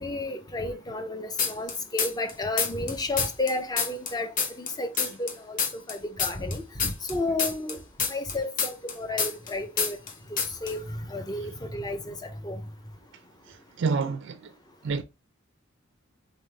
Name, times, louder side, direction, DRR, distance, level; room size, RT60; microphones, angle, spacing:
voice 1, 0.0-5.6 5.9-7.8 8.1-10.0 10.6-12.6, left 2 dB, 20° left, 0.6 m, -32 dB
sound 1, 1.4-2.3 2.6-5.3 5.6-9.5 9.8-10.1 10.4-10.7, left 5 dB, 40° left, 0.9 m, -27 dB
voice 2, 13.8-14.4 14.8-15.0, right 4 dB, 60° right, 0.4 m, -27 dB
3.9 x 3.8 x 3.3 m
head